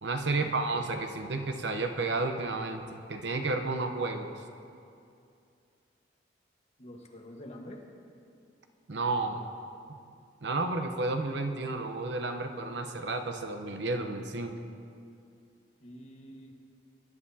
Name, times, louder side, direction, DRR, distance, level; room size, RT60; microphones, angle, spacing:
voice 1, 0.0-4.3 8.9-9.4 9.9-10.0 10.4-14.5, right 3 dB, 65° right, 6 dB, 0.8 m, -32 dB
voice 2, 6.8-7.9 15.8-16.5, equal, 35° left, 0 dB, 1.3 m, -47 dB
21.0 x 11.0 x 2.8 m, 2.5 s
head